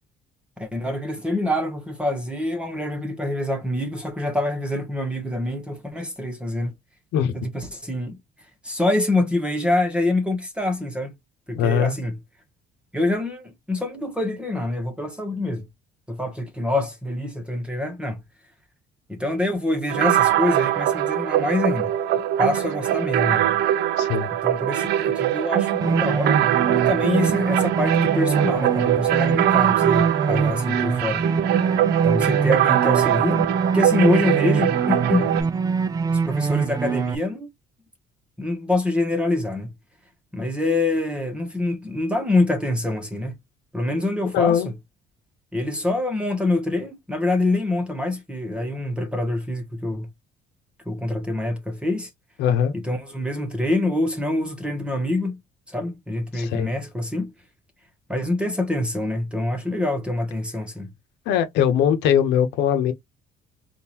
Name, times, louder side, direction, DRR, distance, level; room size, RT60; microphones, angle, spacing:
voice 1, 0.6-6.7 7.3-8.1 8.6-11.1 11.5-12.2 12.9-15.7 16.1-18.2 19.1-21.9 22.4-23.6 24.4-26.4 26.7-31.3 32.0-33.5 33.7-35.3 36.1-37.5 38.4-39.7 40.3-43.4 43.7-44.6 45.5-50.1 50.9-52.1 52.7-55.4 55.7-57.3 58.1-60.9, left 2 dB, 5° right, 1.2 m, -25 dB
voice 2, 11.5-11.9 24.0-24.3 44.3-44.7 52.4-52.7 56.3-56.7 61.3-62.9, left 9 dB, 90° left, 0.9 m, -20 dB
sound 1, 19.9-35.4, right 12 dB, 80° right, 0.6 m, -22 dB
sound 2, 25.8-37.1, right 5 dB, 20° right, 0.4 m, -24 dB
3.6 x 2.5 x 2.9 m
cardioid pair, 110°, 17 cm